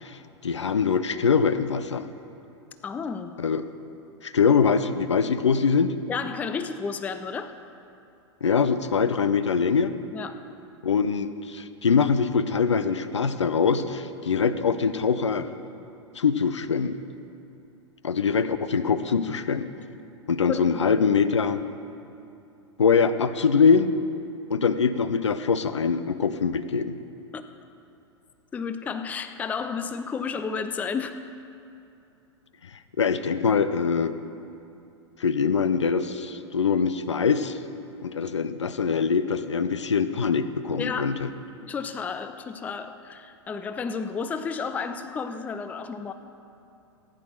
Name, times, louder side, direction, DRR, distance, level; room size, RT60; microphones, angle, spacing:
voice 1, 0.0-2.1 3.4-3.6 4.2-5.9 8.4-9.9 10.8-15.5 16.2-17.0 18.0-19.7 20.3-21.6 22.8-23.9 24.5-27.0 33.0-34.1 35.2-37.6 38.0-41.3, left 5 dB, 70° left, 12 dB, 0.6 m, -23 dB
voice 2, 2.8-3.3 6.1-7.5 10.1-10.4 20.5-20.8 27.3-27.4 28.5-31.3 40.8-41.2 41.6-46.1, left 5 dB, 10° left, 10 dB, 0.4 m, -32 dB
15.0 x 10.0 x 4.4 m, 2.7 s
figure-of-eight pair, 100°, 15 cm